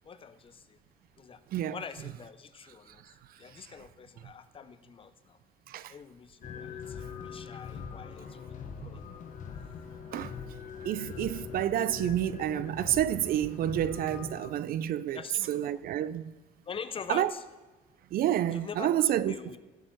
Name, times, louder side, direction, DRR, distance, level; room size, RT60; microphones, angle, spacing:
voice 1, 0.0-0.8 1.2-1.4 1.7-3.0 3.4-5.4 5.9-9.0 15.1-15.8 16.7-17.4 18.5-19.6, left 6 dB, 30° left, 0.6 m, -44 dB
Blood Cult, 6.4-14.5, left 6 dB, 50° left, 1.3 m, -42 dB
voice 2, 10.8-15.2 15.5-16.3 17.1-17.3 18.1-19.6, right 11 dB, 60° right, 0.5 m, -29 dB
15.5 x 6.6 x 4.5 m
cardioid pair, 110°, 17 cm